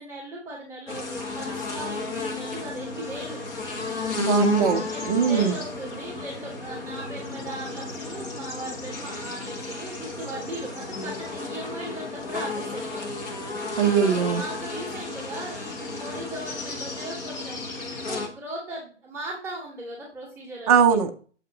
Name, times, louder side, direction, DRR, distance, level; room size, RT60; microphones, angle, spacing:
voice 1, 0.0-3.7 4.9-13.1 13.8-17.7 17.9-21.0, right 1 dB, 5° right, 2.4 m, -38 dB
sound 1, 0.9-18.3, left 3 dB, 20° left, 1.0 m, -33 dB
voice 2, 4.2-5.6 13.8-14.4 20.7-21.2, right 7 dB, 30° right, 0.6 m, -21 dB
7.8 x 4.1 x 3.9 m
hypercardioid pair, 150°, 36 cm